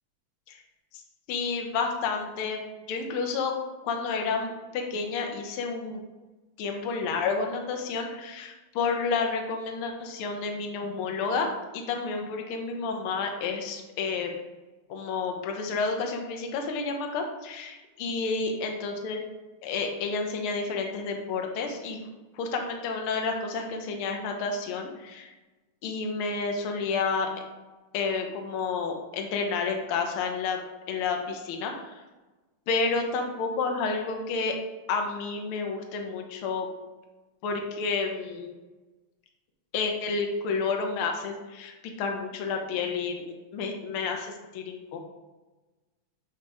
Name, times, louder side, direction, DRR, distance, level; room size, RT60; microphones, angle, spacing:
voice 1, 1.3-2.6 2.9-3.5 3.8-6.0 6.6-14.3 14.9-19.2 19.6-22.0 22.3-25.3 25.8-27.3 27.9-30.6 30.9-32.0 32.7-34.5 34.9-36.7 37.4-38.5 39.7-45.0, left 4 dB, 70° left, 3 dB, 1.4 m, -30 dB
7.8 x 2.9 x 4.8 m, 1.2 s
omnidirectional pair, 3.4 m